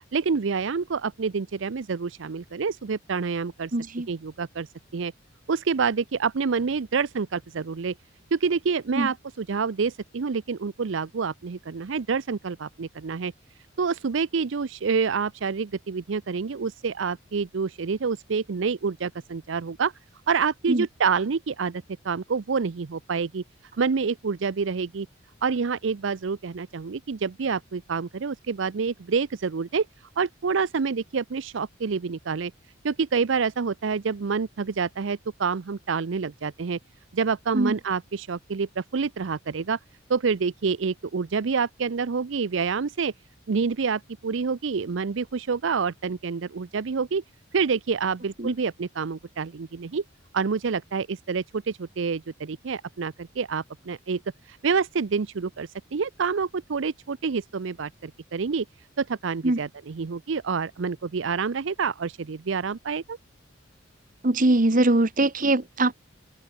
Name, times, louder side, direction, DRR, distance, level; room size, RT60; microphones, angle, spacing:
voice 1, 0.1-3.7 4.1-4.7 4.9-5.1 5.5-7.9 8.3-13.3 13.8-19.9 20.3-23.4 23.8-25.1 25.4-29.9 30.2-32.5 32.8-36.8 37.1-39.8 40.1-43.1 43.5-47.2 47.5-50.0 50.3-54.2 54.5-58.6 59.0-63.2, right 5 dB, 70° right, 0.5 m, -27 dB
voice 2, 3.7-4.1 9.0-9.1 20.7-20.9 37.5-37.7 48.4-48.5 59.4-59.6 64.2-66.0, right 2 dB, 40° right, 1.3 m, -22 dB
open air
head